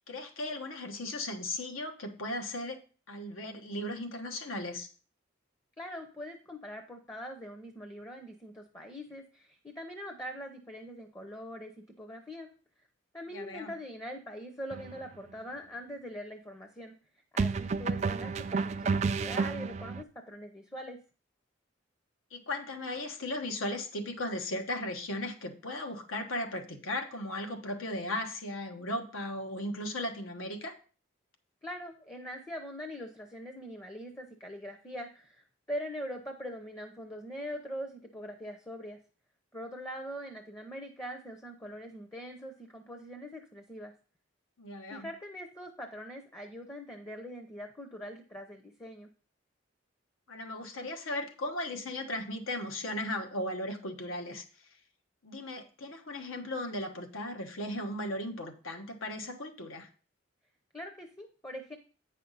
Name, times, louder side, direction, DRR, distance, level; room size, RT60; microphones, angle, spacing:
voice 1, 0.0-2.8 3.1-4.9 13.3-13.7 22.3-30.7 44.6-45.1 50.3-54.4 55.2-59.9, left 1 dB, 85° left, 5 dB, 1.2 m, -36 dB
voice 2, 5.8-12.5 13.1-17.0 17.3-21.0 31.6-39.0 39.5-43.9 44.9-49.1 60.7-61.8, equal, 15° left, 5 dB, 0.7 m, -42 dB
sound 1, 14.7-15.0 17.4-20.0, right 4 dB, 35° right, 0.3 m, -31 dB
9.0 x 5.7 x 4.0 m, 0.39 s
head